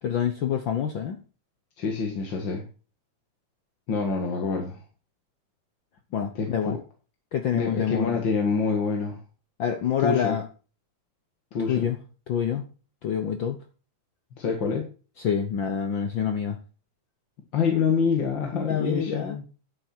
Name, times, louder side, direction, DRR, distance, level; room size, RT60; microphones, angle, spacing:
voice 1, 0.0-1.2 6.1-6.8 7.3-8.2 9.6-10.4 11.7-12.0 12.3-12.6 13.0-13.6 15.2-16.6 18.5-19.4, left 8 dB, 70° left, 7 dB, 1.2 m, -27 dB
voice 2, 1.8-2.6 3.9-4.8 6.4-6.8 7.5-9.2 10.0-10.4 11.5-11.9 14.4-14.9 17.5-19.4, left 5 dB, 45° left, 2 dB, 2.1 m, -26 dB
11.5 x 7.9 x 4.5 m, 0.36 s
omnidirectional pair, 3.4 m